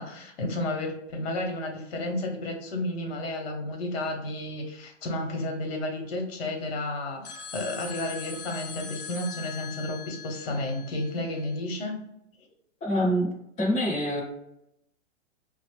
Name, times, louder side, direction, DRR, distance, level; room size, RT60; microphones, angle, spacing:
voice 1, 0.0-12.0, left 1 dB, 55° left, 2 dB, 1.0 m, -32 dB
sound 1, 7.2-11.6, left 6 dB, 35° left, 0.4 m, -41 dB
voice 2, 12.8-14.2, equal, 15° left, -4 dB, 1.0 m, -26 dB
5.2 x 2.0 x 3.3 m, 0.82 s
hypercardioid pair, 150°, 37 cm